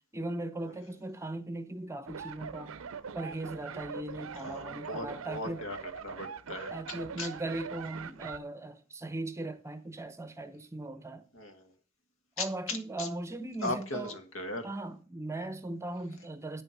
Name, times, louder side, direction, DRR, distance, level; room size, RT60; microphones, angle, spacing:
voice 1, 0.1-2.8 3.1-5.6 6.7-11.3 12.4-14.1 14.6-16.6, right 2 dB, 15° right, 0.7 m, -38 dB
sound 1, 2.1-8.4, right 6 dB, 80° right, 0.6 m, -42 dB
voice 2, 4.4-6.8 7.2-7.3 11.3-11.7 12.4-13.1 13.6-14.7, left 2 dB, 75° left, 1.7 m, -38 dB
8.7 x 7.1 x 5.8 m
head